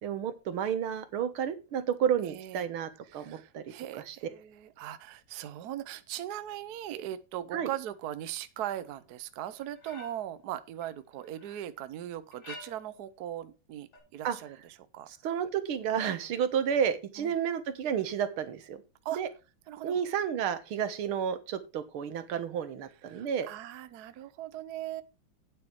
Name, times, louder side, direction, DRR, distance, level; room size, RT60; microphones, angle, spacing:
voice 1, 0.0-3.6 4.1-4.2 7.5-7.7 14.2-14.4 15.1-18.8 19.1-19.3 19.8-23.5, right 8 dB, 80° right, 2.0 m, -31 dB
voice 2, 2.2-2.6 3.1-15.1 17.2-17.3 19.0-19.2 19.7-20.0 23.1-25.0, right 12 dB, 60° right, 1.1 m, -39 dB
sound 1, 9.6-10.4 10.8-11.6 12.3-13.1 13.9-14.0, left 3 dB, 65° left, 6.6 m, -49 dB
9.2 x 8.3 x 4.6 m
omnidirectional pair, 2.3 m